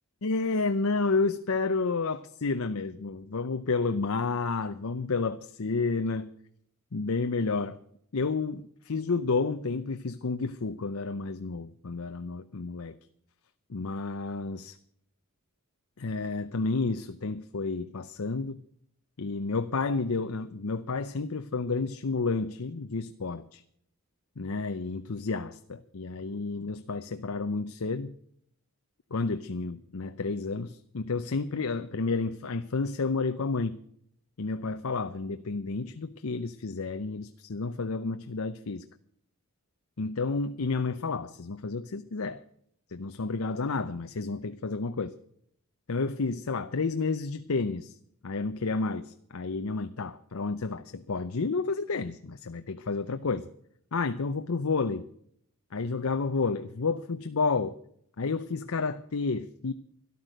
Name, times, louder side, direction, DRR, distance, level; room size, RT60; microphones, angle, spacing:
voice 1, 0.2-6.3 6.9-7.8 8.1-13.0 13.7-14.8 16.0-18.6 19.2-23.6 24.4-28.1 29.1-33.8 34.4-38.9 40.0-42.4 42.9-45.2 45.9-48.0 48.2-53.5 53.9-55.1 55.7-57.8 58.2-59.7, left 4 dB, 75° left, 10 dB, 0.7 m, -30 dB
13.0 x 12.0 x 6.4 m, 0.66 s
head